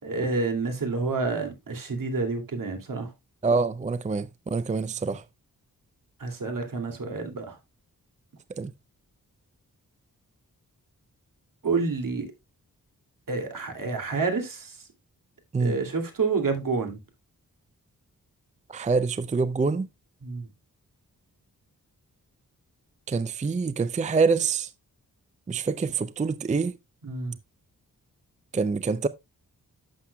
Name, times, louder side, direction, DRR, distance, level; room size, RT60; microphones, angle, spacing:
voice 1, 0.0-3.1 6.2-7.6 11.6-12.3 13.3-14.8 15.6-17.0 20.2-20.5 27.0-27.4, right 4 dB, 70° right, 2.5 m, -29 dB
voice 2, 3.4-5.2 8.6-8.7 15.5-15.8 18.7-19.9 23.1-24.7 25.5-26.8 28.5-29.1, right 4 dB, 20° right, 0.4 m, -26 dB
11.5 x 7.7 x 2.2 m
wide cardioid pair, 100°, 35 cm